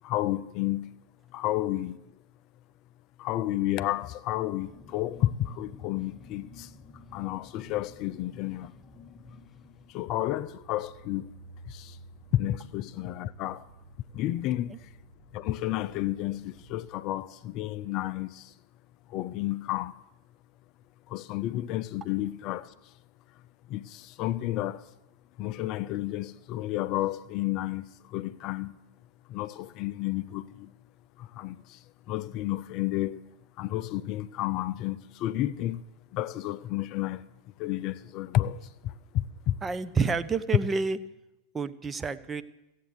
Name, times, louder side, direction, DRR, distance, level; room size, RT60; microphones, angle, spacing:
voice 1, 0.0-0.9 1.3-2.0 3.2-6.7 7.1-8.7 9.9-11.4 11.7-12.0 12.3-13.7 14.1-14.9 15.3-18.6 19.1-20.0 21.1-22.9 23.7-24.9 25.4-28.7 29.3-30.7 31.2-33.2 33.6-35.9 36.1-37.2 37.6-39.6, left 14 dB, 40° left, 0.4 m, -31 dB
sound 1, 4.6-10.3, left 3 dB, 15° left, 0.9 m, -51 dB
sound 2, 10.1-16.9, right 2 dB, 40° right, 1.2 m, -52 dB
voice 2, 39.6-41.0 41.5-42.4, right 4 dB, 15° right, 0.6 m, -29 dB
15.5 x 8.2 x 7.8 m
figure-of-eight pair, 90°, 0 cm